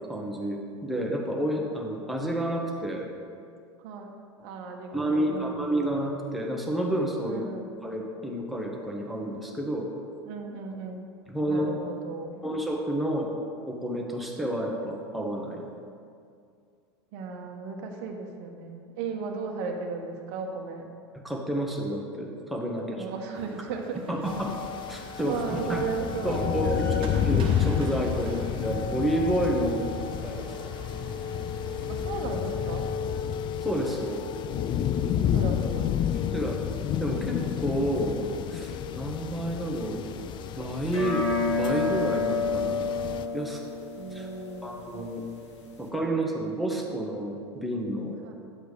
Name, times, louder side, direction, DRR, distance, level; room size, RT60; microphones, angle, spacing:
voice 1, 0.1-3.1 4.4-4.5 4.9-7.4 7.8-9.9 11.3-11.7 12.4-13.3 13.7-15.7 21.2-23.1 24.1-24.6 24.9-25.9 26.2-30.5 33.6-34.2 36.1-36.6 37.0-38.2 38.5-40.1 40.6-42.9 43.3-43.6 44.1-44.3 44.6-45.2 45.8-48.3, right 1 dB, ahead, -1 dB, 1.4 m, -30 dB
voice 2, 4.4-5.7 7.2-7.7 10.3-11.0 11.5-12.4 17.1-20.9 22.9-24.0 25.2-27.1 29.7-30.5 31.9-32.9 35.1-36.3 44.0-44.8 48.2-48.3, right 4 dB, 55° right, 2 dB, 1.1 m, -36 dB
sound 1, 23.3-32.8, right 4 dB, 35° right, 1.2 m, -47 dB
sound 2, 24.3-43.3, left 9 dB, 30° left, 0.4 m, -30 dB
sound 3, 40.9-45.9, left 4 dB, 75° left, 1.5 m, -30 dB
11.0 x 7.8 x 3.4 m, 2.3 s
figure-of-eight pair, 85°, 15 cm